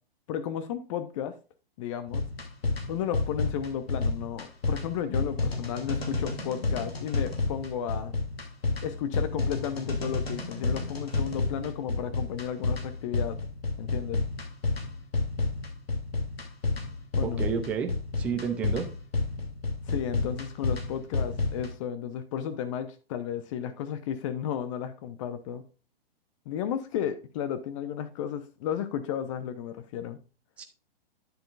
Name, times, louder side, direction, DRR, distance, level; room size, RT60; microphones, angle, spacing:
voice 1, 0.3-1.4 1.8-2.3 2.9-8.1 8.8-13.4 13.8-14.2 17.2-17.4 19.9-25.6 26.5-30.2, left 9 dB, 30° left, 0.7 m, -33 dB
sound 1, 2.1-21.7, left 3 dB, 75° left, 2.8 m, -30 dB
voice 2, 17.2-17.9 18.2-18.9 30.6-30.7, right 7 dB, 5° right, 0.3 m, -30 dB
9.7 x 7.4 x 2.4 m
figure-of-eight pair, 125°, 30 cm